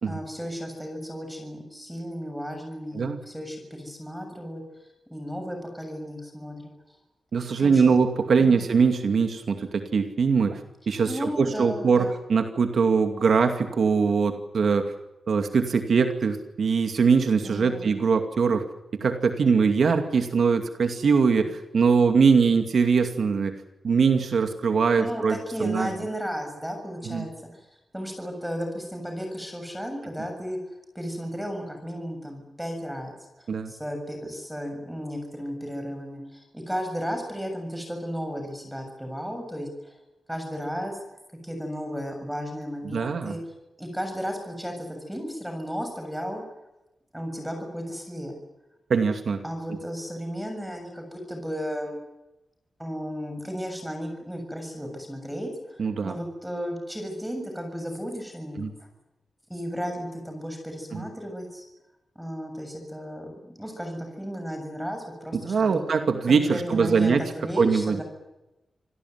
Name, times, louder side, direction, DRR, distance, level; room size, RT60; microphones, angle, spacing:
voice 1, 0.1-6.7 7.5-8.0 8.4-8.7 11.0-12.2 17.4-18.0 25.0-27.7 27.9-30.6 30.9-33.1 33.4-40.0 40.3-41.0 41.4-43.4 43.8-46.4 47.1-48.3 49.4-52.0 52.8-58.6 59.5-61.6 62.2-65.8 66.3-68.0, equal, 5° right, 4 dB, 7.1 m, -34 dB
voice 2, 7.3-10.6 10.9-14.9 15.3-18.7 18.9-23.6 23.8-25.9 27.0-27.3 33.5-33.7 42.8-43.4 48.9-49.4 49.7-49.8 55.8-56.1 58.6-58.7 60.9-61.0 65.3-67.2 67.6-68.0, right 5 dB, 65° right, 6 dB, 2.4 m, -22 dB
27.0 x 17.5 x 9.5 m, 0.97 s
wide cardioid pair, 140°, 0 cm